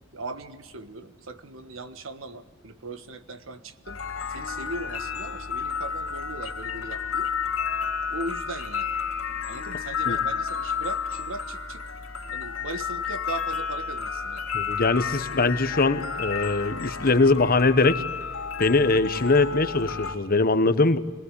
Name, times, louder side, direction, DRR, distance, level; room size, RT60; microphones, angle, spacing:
voice 1, 0.1-4.0 4.3-7.3 8.1-8.9 9.5-11.8 12.3-14.5 15.0-15.3, right 2 dB, 75° right, 10 dB, 1.4 m, -38 dB
sound 1, 3.9-20.2, left 6 dB, 80° left, 3.4 m, -31 dB
voice 2, 14.5-18.0 18.6-21.0, left 3 dB, 45° left, 11 dB, 1.2 m, -22 dB
24.5 x 19.0 x 9.9 m, 1.4 s
head